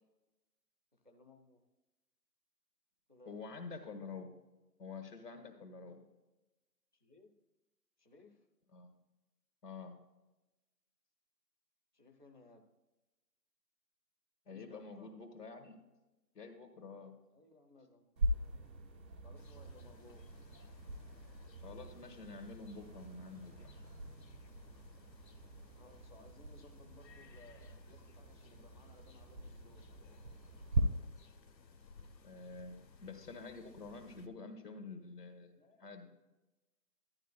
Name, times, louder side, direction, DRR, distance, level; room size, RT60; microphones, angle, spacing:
voice 1, 0.9-1.6 3.1-3.4 6.9-7.3 8.0-8.5 11.9-12.6 14.5-15.1 17.3-18.4 19.2-20.2 25.8-29.8 35.5-36.1, left 2 dB, 30° right, 3 dB, 0.5 m, -61 dB
voice 2, 3.2-4.4 4.8-6.1 8.7-8.9 9.6-10.0 14.5-15.8 16.3-17.2 21.6-23.7 32.2-35.5 35.8-36.1, left 4 dB, 70° left, 5 dB, 1.6 m, -48 dB
sound 1, 18.2-30.8, right 2 dB, 85° right, 1.2 m, -42 dB
sound 2, 19.3-34.3, left 4 dB, 90° left, 1.0 m, -61 dB
11.5 x 10.0 x 2.2 m, 1.0 s
figure-of-eight pair, 160°, 49 cm